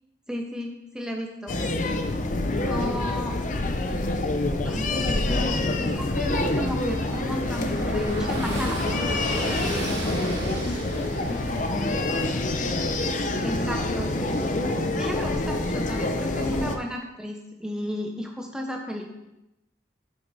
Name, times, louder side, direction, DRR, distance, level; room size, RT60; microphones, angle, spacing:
voice 1, 0.3-1.6 2.7-3.4 4.6-8.9 13.4-14.4 15.0-19.1, equal, 5° right, 1 dB, 0.6 m, -34 dB
sound 1, 1.5-16.8, left 2 dB, 40° left, 0.6 m, -26 dB
voice 2, 2.5-3.5 9.9-12.3 14.7-15.0, left 1 dB, 80° left, -13 dB, 3.2 m, -38 dB
Car passing by / Engine, 5.9-13.8, right 2 dB, 80° right, 2.5 m, -37 dB
8.1 x 6.0 x 4.0 m, 0.93 s
head